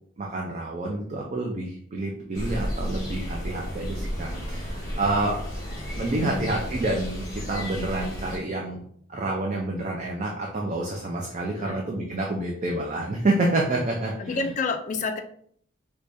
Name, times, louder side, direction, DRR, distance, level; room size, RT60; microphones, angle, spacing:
voice 1, 0.2-5.4 6.0-8.8 9.1-14.4, right 2 dB, 35° right, -1 dB, 0.4 m, -28 dB
sound 1, 2.3-8.4, equal, 15° left, 1.0 m, -33 dB
voice 2, 6.2-6.5 11.6-11.8 14.2-15.2, left 4 dB, 35° left, 6 dB, 0.3 m, -29 dB
4.7 x 2.2 x 2.6 m, 0.63 s
head